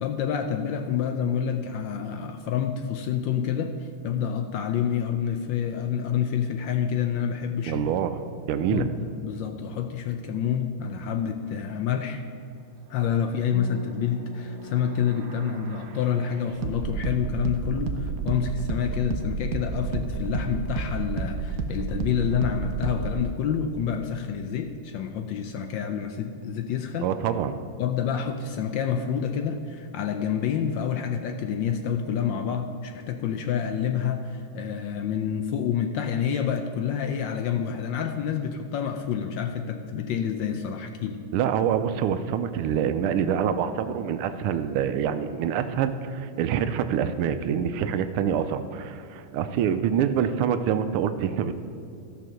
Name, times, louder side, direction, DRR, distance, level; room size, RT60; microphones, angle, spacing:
voice 1, 0.0-7.8 8.7-12.2 12.9-27.1 27.8-41.2, left 8 dB, 75° left, 6 dB, 1.2 m, -28 dB
voice 2, 7.7-8.2 8.5-8.9 27.0-27.5 41.3-51.5, right 8 dB, 85° right, 10 dB, 1.5 m, -26 dB
Bass guitar, 13.5-19.8, equal, 50° left, 2.1 m, -44 dB
sound 1, 14.6-23.2, right 4 dB, 70° right, 0.8 m, -31 dB
14.0 x 5.7 x 6.3 m, 2.4 s
omnidirectional pair, 2.4 m